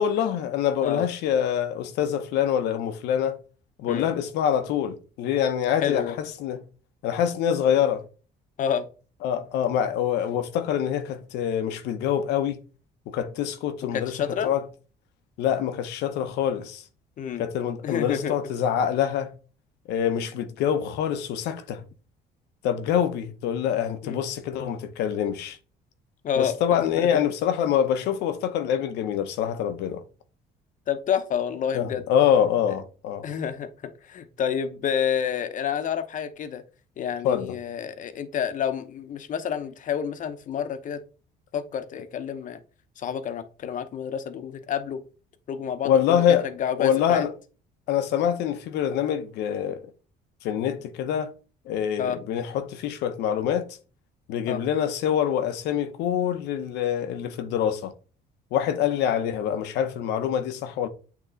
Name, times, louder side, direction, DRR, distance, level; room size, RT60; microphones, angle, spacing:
voice 1, 0.0-3.4 3.8-6.6 7.0-8.0 9.2-12.6 13.1-14.1 14.4-14.6 15.4-16.8 17.4-19.3 19.9-21.8 22.6-25.6 26.3-30.0 31.7-33.2 37.2-37.6 45.8-46.5 46.8-47.3 47.9-49.8 50.4-51.3 51.7-53.7 54.3-57.9 58.5-60.9, left 9 dB, 85° left, 0.8 m, -25 dB
voice 2, 5.8-6.2 8.6-8.9 13.9-14.5 17.2-17.4 17.8-18.3 24.0-24.2 26.2-26.6 27.0-27.2 30.9-32.0 32.7-32.8 33.2-36.6 37.0-41.0 41.5-42.6 43.0-45.0 45.5-47.2 52.0-52.2 54.5-54.6, left 8 dB, 50° left, 0.8 m, -29 dB
8.6 x 3.0 x 3.9 m
cardioid pair, 110°, 17 cm